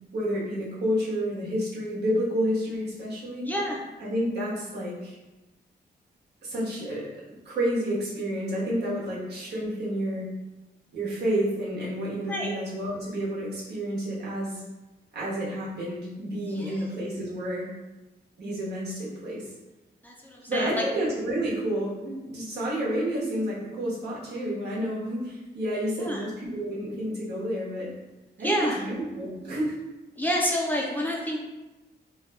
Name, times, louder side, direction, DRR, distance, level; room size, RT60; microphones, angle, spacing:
voice 1, 0.1-3.5 4.0-5.2 6.4-7.1 7.4-10.3 10.9-14.6 15.1-17.7 18.4-19.4 20.5-27.9 28.4-29.7, equal, 75° right, -6 dB, 1.1 m, -30 dB
voice 2, 3.4-3.8 12.3-12.5 16.5-16.9 20.0-20.8 26.0-26.2 28.4-28.8 30.2-31.4, equal, 10° left, -3 dB, 0.4 m, -28 dB
2.8 x 2.2 x 3.9 m, 1.1 s
wide cardioid pair, 135°, 17 cm